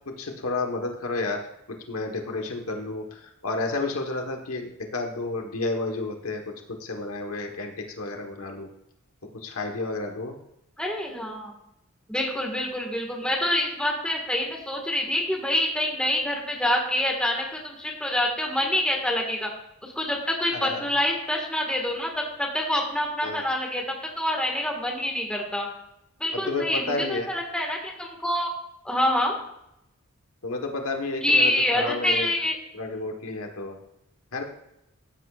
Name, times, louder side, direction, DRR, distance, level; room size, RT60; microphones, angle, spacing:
voice 1, 0.2-1.4 1.9-6.4 6.7-8.7 9.4-10.4 20.6-20.8 23.2-23.5 26.5-27.3 30.4-32.3 32.7-33.8 34.3-34.4, left 2 dB, 85° left, 3 dB, 1.3 m, -31 dB
voice 2, 10.8-11.5 12.1-19.5 19.8-25.7 26.2-28.5 28.8-29.4 31.2-32.6, left 1 dB, 5° left, 0 dB, 1.7 m, -26 dB
15.0 x 8.4 x 2.5 m, 0.81 s
head